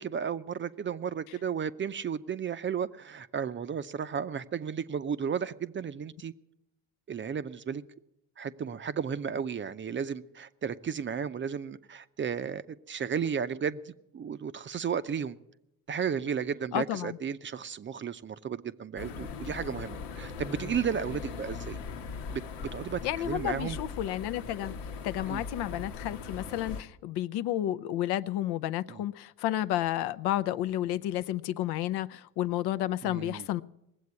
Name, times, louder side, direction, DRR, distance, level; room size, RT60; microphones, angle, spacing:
voice 1, 0.0-6.3 7.1-7.8 8.4-15.4 15.9-21.8 22.3-23.8 25.3-25.4 28.9-29.0 33.0-33.5, right 7 dB, 30° right, 13 dB, 0.5 m, -34 dB
voice 2, 16.7-17.2 23.0-24.7 25.0-33.6, left 13 dB, 70° left, 14 dB, 0.7 m, -31 dB
sound 1, 19.0-26.8, left 5 dB, 90° left, 1.2 m, -40 dB
19.0 x 7.8 x 9.5 m, 0.86 s
supercardioid pair, 95°, 40 cm